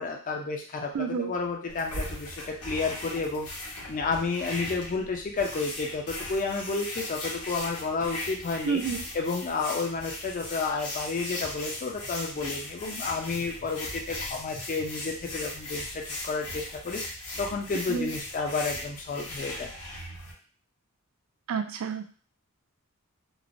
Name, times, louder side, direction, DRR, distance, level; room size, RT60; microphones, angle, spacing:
voice 1, 0.0-3.5 3.9-8.8 9.1-19.7, left 4 dB, 35° left, 1 dB, 0.4 m, -31 dB
voice 2, 0.9-1.3 8.6-9.0 17.9-18.1 21.5-22.1, right 6 dB, 65° right, 7 dB, 0.3 m, -29 dB
sound 1, 1.7-20.3, left 1 dB, 85° left, 0.9 m, -38 dB
3.1 x 2.0 x 2.5 m, 0.41 s
head